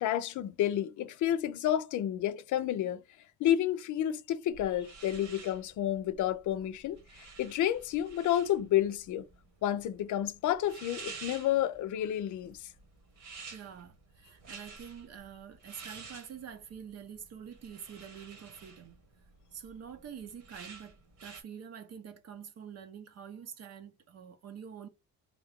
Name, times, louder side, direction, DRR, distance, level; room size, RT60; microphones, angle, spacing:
voice 1, 0.0-3.0 3.4-9.2 9.6-12.7, left 11 dB, 75° left, 0.6 m, -30 dB
sound 1, 4.5-21.4, right 4 dB, 80° right, 1.6 m, -51 dB
voice 2, 13.5-19.0 19.5-24.9, right 7 dB, 55° right, 0.7 m, -46 dB
3.5 x 2.3 x 3.6 m
cardioid pair, 90°, 30 cm